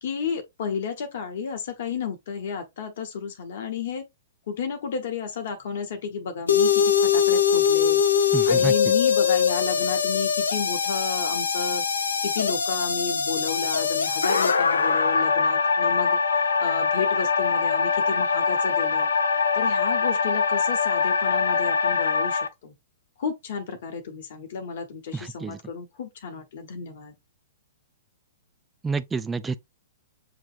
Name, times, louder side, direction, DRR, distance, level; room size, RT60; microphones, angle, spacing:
voice 1, 0.0-4.0 4.5-19.1 19.5-22.8 23.2-27.2, left 6 dB, 60° left, 1.2 m, -32 dB
sound 1, 6.5-22.5, left 6 dB, 80° left, 0.6 m, -22 dB
voice 2, 8.3-8.7 25.1-25.6 28.8-29.6, right 4 dB, 15° right, 0.3 m, -29 dB
7.1 x 3.0 x 2.5 m
hypercardioid pair, 120°, 0 cm